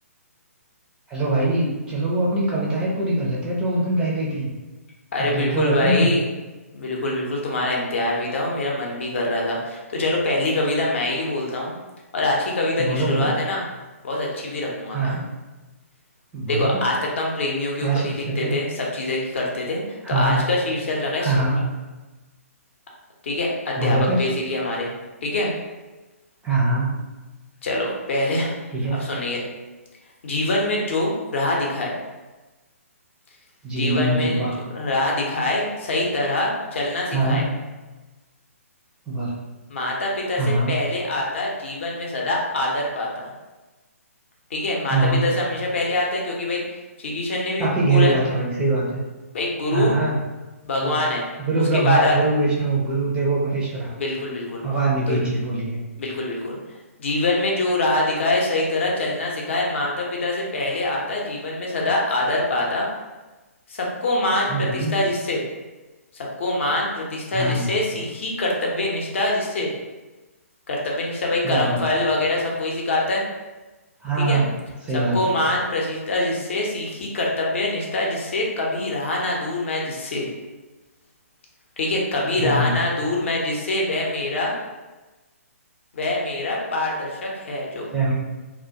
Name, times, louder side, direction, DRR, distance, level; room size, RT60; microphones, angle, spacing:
voice 1, 1.1-4.5 5.2-6.1 12.8-13.4 14.9-15.2 16.3-16.8 17.8-18.5 20.0-20.5 21.2-21.6 23.8-24.3 26.4-27.1 28.7-29.0 33.6-34.6 37.1-37.6 39.1-39.4 40.3-40.8 44.9-45.4 47.6-49.0 49.7-50.2 50.8-51.0 51.4-53.9 54.6-55.8 64.5-64.9 67.3-67.7 71.4-71.9 74.0-75.4 82.3-82.7 87.9-88.1, right 2 dB, 10° right, -6 dB, 0.4 m, -23 dB
voice 2, 5.1-6.2 6.7-11.7 12.1-13.6 14.0-15.2 16.5-19.8 20.1-21.3 23.2-24.9 25.2-25.5 27.6-28.5 29.0-29.4 30.2-32.0 33.7-37.4 39.7-40.4 40.7-43.3 44.5-46.6 47.0-48.2 49.3-49.9 50.6-51.3 51.6-52.1 53.9-54.6 55.1-55.2 56.0-56.6 57.0-62.9 63.7-65.4 66.1-69.7 70.7-73.2 74.2-74.4 74.9-80.3 81.8-84.5 85.9-87.9, left 2 dB, 55° left, -1 dB, 0.6 m, -24 dB
2.2 x 2.2 x 2.6 m, 1.2 s
figure-of-eight pair, 130°, 8 cm